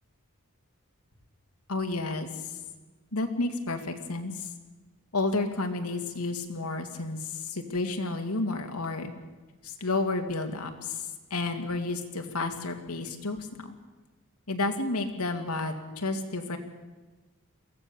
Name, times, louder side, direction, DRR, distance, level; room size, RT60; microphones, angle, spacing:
voice 1, 1.7-2.3 3.1-4.5 5.1-9.1 9.6-11.1 11.3-13.7 14.5-16.6, left 2 dB, 85° left, 5 dB, 2.3 m, -31 dB
23.0 x 16.0 x 7.0 m, 1.3 s
head